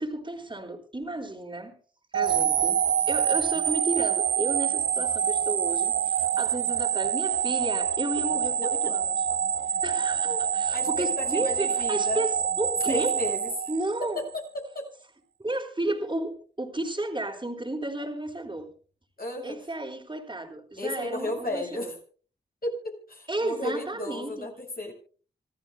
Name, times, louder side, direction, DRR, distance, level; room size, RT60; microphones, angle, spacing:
voice 1, 0.0-1.7 2.1-2.8 3.1-9.3 9.7-13.1 13.7-14.2 15.4-18.7 19.4-21.9 23.3-24.5, right 2 dB, 25° right, 3.7 m, -33 dB
sound 1, 2.1-14.3, right 8 dB, 85° right, 0.6 m, -26 dB
voice 2, 8.6-8.9 10.2-10.4 10.7-12.3 12.9-13.7 14.2-14.3 14.7-14.8 19.2-19.6 20.8-22.0 22.6-24.9, left 1 dB, 50° left, 7.1 m, -34 dB
26.5 x 14.5 x 2.2 m
cardioid pair, 55°, 19 cm